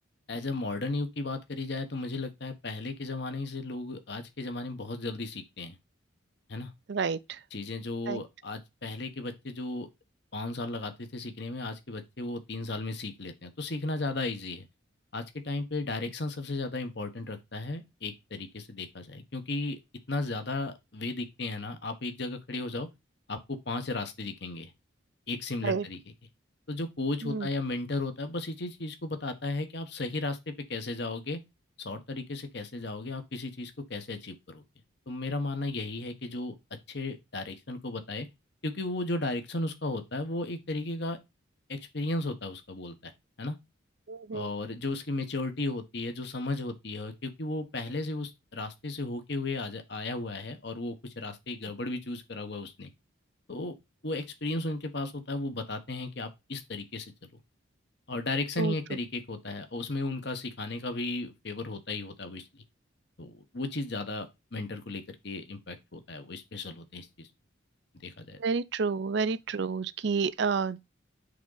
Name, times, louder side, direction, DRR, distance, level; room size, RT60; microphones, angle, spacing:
voice 1, 0.3-5.8 6.5-6.7 7.5-9.9 10.3-14.7 15.1-19.8 20.1-22.9 23.3-24.7 25.3-26.0 26.7-31.4 31.8-34.6 35.1-36.5 36.9-38.3 38.6-41.2 41.7-43.1 43.4-43.6 44.3-52.9 53.5-53.7 54.0-57.4 58.1-62.6 63.2-67.3 68.0-68.4, left 2 dB, 55° left, 1.2 m, -35 dB
voice 2, 6.9-7.4 8.1-8.2 25.6-25.9 27.2-27.5 44.1-44.5 58.6-58.7 68.4-70.8, right 5 dB, 60° right, 0.5 m, -30 dB
8.3 x 3.7 x 4.0 m
head